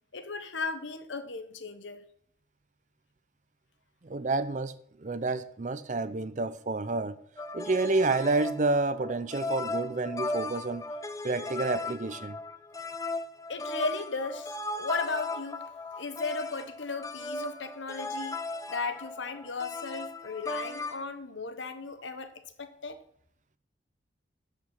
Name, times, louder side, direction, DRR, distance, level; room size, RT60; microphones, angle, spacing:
voice 1, 0.1-2.0 13.5-15.7 15.9-18.4 18.7-22.3 22.6-23.0, left 3 dB, 85° left, 1.0 m, -36 dB
voice 2, 4.0-7.2 7.5-10.8 11.2-12.4, right 3 dB, 40° right, 0.5 m, -29 dB
sound 1, 7.4-21.0, left 2 dB, 20° left, 0.5 m, -37 dB
12.0 x 5.2 x 5.9 m
head